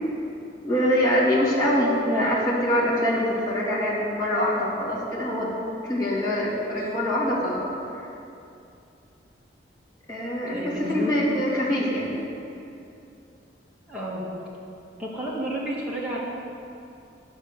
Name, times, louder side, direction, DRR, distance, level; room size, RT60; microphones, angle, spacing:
voice 1, 0.6-5.5 5.8-7.6 10.1-12.1, equal, 20° left, -8 dB, 2.4 m, -24 dB
voice 2, 10.5-12.0 13.9-14.2 15.0-16.2, right 1 dB, 5° right, -7 dB, 1.8 m, -32 dB
10.5 x 6.4 x 6.5 m, 2.6 s
head